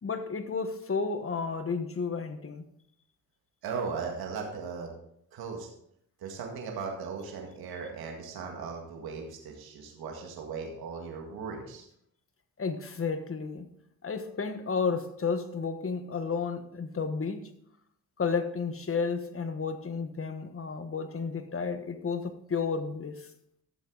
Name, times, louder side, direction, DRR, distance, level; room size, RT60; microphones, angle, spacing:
voice 1, 0.0-2.6 12.6-13.7 14.0-17.5 18.2-23.3, left 5 dB, 40° left, 1.4 m, -32 dB
voice 2, 3.6-4.9 5.3-5.7 6.2-11.9, right 5 dB, 85° right, 2.0 m, -37 dB
13.5 x 7.5 x 4.0 m
cardioid pair, 70°, 36 cm